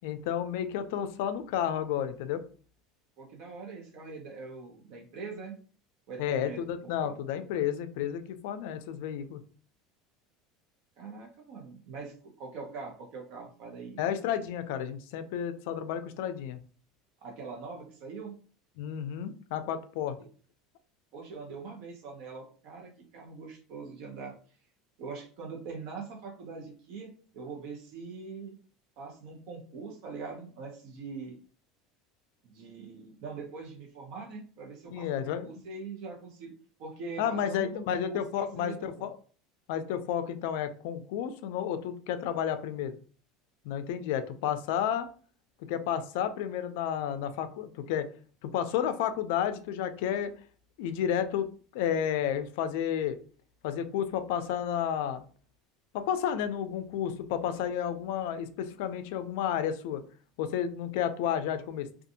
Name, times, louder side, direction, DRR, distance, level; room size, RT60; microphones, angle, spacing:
voice 1, 0.0-2.4 6.2-9.4 14.0-16.6 18.8-20.2 34.9-35.5 37.2-39.2 39.7-42.9 43.6-45.1 45.7-48.1 48.4-50.3 50.8-53.2 53.6-55.2 55.9-60.0 60.4-61.9, left 9 dB, 70° left, 10 dB, 0.3 m, -31 dB
voice 2, 3.2-5.5 6.1-7.1 11.0-14.0 17.2-18.4 21.1-24.4 25.0-28.6 29.0-31.3 32.4-36.5 36.8-39.1, right 4 dB, 55° right, 0 dB, 0.8 m, -42 dB
2.6 x 2.3 x 2.7 m, 0.41 s
supercardioid pair, 155°, 0 cm